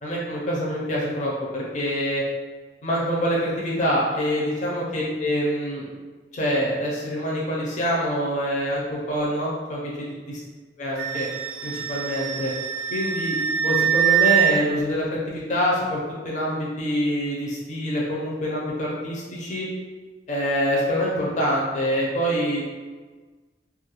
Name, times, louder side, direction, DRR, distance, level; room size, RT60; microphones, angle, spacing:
voice 1, 0.0-2.2 2.8-5.9 6.3-10.4 10.8-11.3 11.6-12.5 12.9-19.7 20.3-22.6, equal, 45° left, -5 dB, 0.5 m, -25 dB
Wind instrument woodwind instrument, 11.0-14.5, right 10 dB, 70° right, 0.3 m, -23 dB
2.3 x 2.1 x 2.9 m, 1.4 s
head